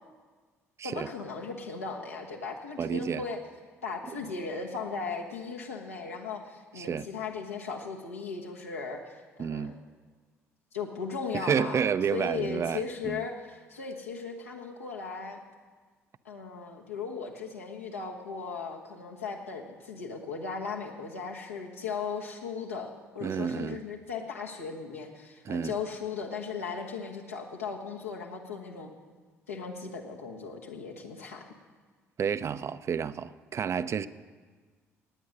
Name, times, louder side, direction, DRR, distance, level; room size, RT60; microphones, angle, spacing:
voice 1, 0.8-3.4 3.8-9.7 10.7-11.8 12.1-15.4 16.2-28.9 29.5-31.4, left 5 dB, 85° left, -1 dB, 1.4 m, -37 dB
voice 2, 2.8-3.2 6.8-7.1 9.4-9.8 11.3-13.2 23.2-23.8 25.5-25.7 32.2-34.1, right 7 dB, 40° right, 13 dB, 0.5 m, -30 dB
18.0 x 9.3 x 6.5 m, 1.5 s
figure-of-eight pair, 50°, 7 cm